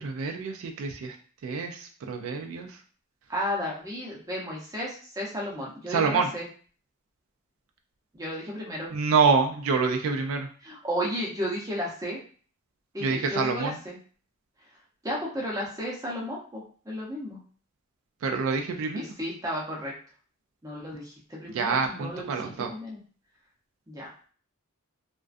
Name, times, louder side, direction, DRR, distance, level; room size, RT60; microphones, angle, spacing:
voice 1, 0.0-1.1 1.4-2.7 5.9-6.3 8.9-10.5 13.0-13.8 18.2-19.0 21.5-22.7, right 5 dB, 80° right, 4 dB, 0.3 m, -26 dB
voice 2, 3.3-6.5 8.1-8.9 10.6-12.2 12.9-14.0 15.0-17.4 18.9-19.9 20.6-23.0 23.9-24.1, equal, 15° right, -3 dB, 0.6 m, -33 dB
2.4 x 2.2 x 2.4 m, 0.43 s
head